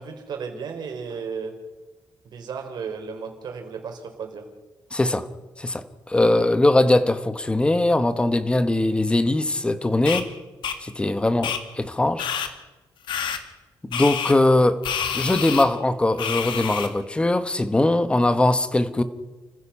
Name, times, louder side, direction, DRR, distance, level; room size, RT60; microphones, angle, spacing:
voice 1, 0.0-1.5 2.2-4.5, right 5 dB, 65° right, 5 dB, 3.9 m, -34 dB
voice 2, 4.9-5.3 5.6-10.3 10.8-12.3 13.8-14.8 15.1-19.0, left 2 dB, 15° left, 12 dB, 1.1 m, -21 dB
sound 1, 10.1-10.2 10.6-10.8 11.4-11.6 12.2-12.5 13.1-13.4 13.9-14.3 14.8-15.7 16.2-16.9, left 8 dB, 90° left, 1.9 m, -27 dB
30.0 x 15.5 x 5.8 m, 1.2 s
wide cardioid pair, 155°, 8 cm